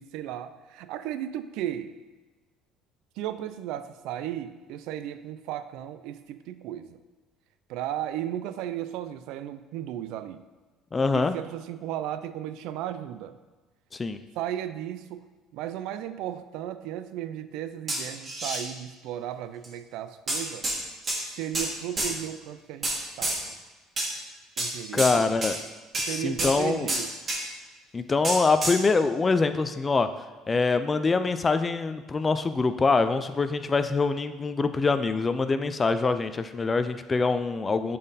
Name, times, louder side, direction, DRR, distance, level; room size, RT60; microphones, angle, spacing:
voice 1, 0.0-2.0 3.2-7.0 7.7-10.4 11.0-13.4 14.4-15.3 15.5-20.7 21.3-22.9 23.2-23.5 24.6-25.3 26.1-27.1, right 11 dB, 75° right, 12 dB, 0.4 m, -35 dB
voice 2, 10.9-11.4 13.9-14.2 24.9-25.6 26.1-26.9 27.9-30.1 30.5-38.0, left 4 dB, 25° left, 10 dB, 0.4 m, -24 dB
sound 1, 17.9-18.6 19.6-19.7 20.3-20.8 21.0-21.7 22.0-22.1 22.8-23.4 24.0-24.1 24.6-24.7 25.0-25.1 25.4-25.6 25.9-26.1 26.4-26.5 26.9-27.4 28.2-28.8, right 1 dB, 30° right, 1.9 m, -28 dB
7.4 x 4.1 x 4.0 m, 1.3 s
cardioid pair, 110°, 0 cm